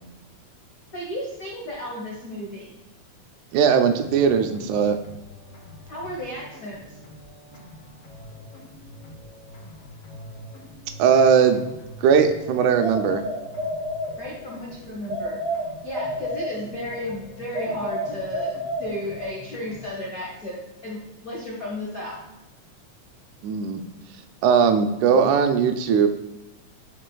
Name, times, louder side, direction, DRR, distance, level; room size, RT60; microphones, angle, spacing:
voice 1, 0.9-2.7 5.9-7.0 14.2-15.3 15.8-22.2, left 1 dB, 80° left, -3 dB, 0.7 m, -34 dB
voice 2, 3.5-5.0 11.0-11.6 12.0-13.2 23.4-23.8 24.4-26.1, right 7 dB, 85° right, 7 dB, 2.1 m, -19 dB
sound 1, 4.0-20.0, left 1 dB, 65° left, 2.2 m, -45 dB
sound 2, 12.8-14.6 15.1-17.0 17.5-19.4, equal, 60° right, 1.8 m, -30 dB
7.6 x 6.0 x 2.3 m, 1.0 s
omnidirectional pair, 3.4 m